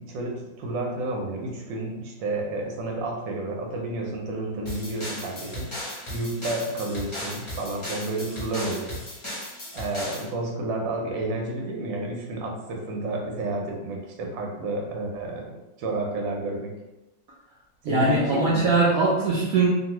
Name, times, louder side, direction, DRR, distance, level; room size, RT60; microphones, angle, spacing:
voice 1, 0.0-5.7 6.1-9.0 9.7-16.7 17.8-18.7, right 2 dB, 85° right, 0 dB, 1.3 m, -31 dB
sound 1, 4.7-10.3, left 1 dB, 35° left, 0.4 m, -36 dB
voice 2, 17.8-19.7, right 3 dB, 65° right, -6 dB, 0.9 m, -21 dB
2.9 x 2.5 x 2.8 m, 0.99 s
omnidirectional pair, 2.0 m